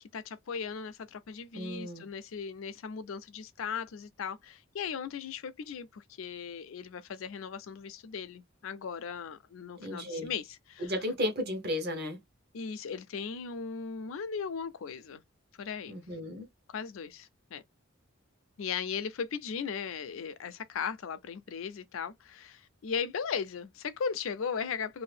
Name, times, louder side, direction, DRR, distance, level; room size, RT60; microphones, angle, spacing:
voice 1, 0.1-10.9 12.5-15.2 15.6-16.0 16.7-17.6 18.6-25.0, left 6 dB, 75° left, 0.4 m, -37 dB
voice 2, 1.5-2.1 9.8-10.3 10.8-12.2 15.9-16.5, left 1 dB, 50° right, 0.9 m, -34 dB
2.7 x 2.5 x 3.3 m
head